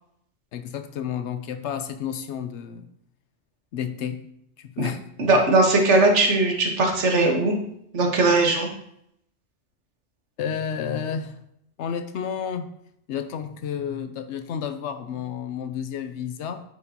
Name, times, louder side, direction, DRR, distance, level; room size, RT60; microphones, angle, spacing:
voice 1, 0.5-2.9 3.7-4.2 4.6-5.0 10.4-11.3 11.8-12.7 13.1-16.6, left 8 dB, 70° left, 10 dB, 0.8 m, -31 dB
voice 2, 5.2-7.5 7.9-8.7, right 2 dB, 70° right, 2 dB, 1.5 m, -19 dB
9.0 x 4.9 x 2.8 m, 0.75 s
omnidirectional pair, 1.3 m